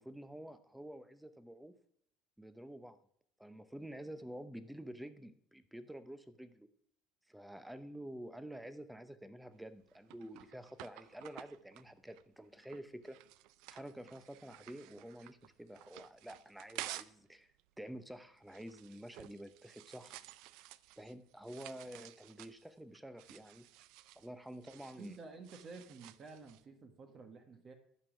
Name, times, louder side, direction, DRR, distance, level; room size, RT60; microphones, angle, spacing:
voice 1, 0.0-1.7 2.4-3.0 3.4-6.7 7.3-13.2 13.7-17.5 17.8-20.2 21.0-23.7 24.2-25.2, right 1 dB, 5° right, 12 dB, 0.7 m, -49 dB
sound 1, 9.5-17.3 17.6-26.6, right 16 dB, 70° right, 0.4 m, -53 dB
voice 2, 25.0-27.7, right 3 dB, 35° right, 6 dB, 1.2 m, -51 dB
11.0 x 5.3 x 6.0 m, 0.68 s
supercardioid pair, 120°, 0 cm